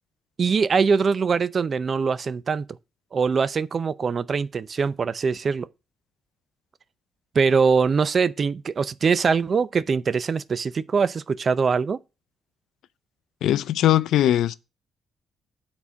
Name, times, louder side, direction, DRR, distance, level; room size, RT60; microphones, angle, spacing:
voice 1, 0.4-2.6 3.1-5.7 7.3-12.0, right 5 dB, 45° right, 0.5 m, -22 dB
voice 2, 13.4-14.5, left 12 dB, 80° left, 0.5 m, -20 dB
7.1 x 4.2 x 6.2 m
cardioid pair, 90°, 0 cm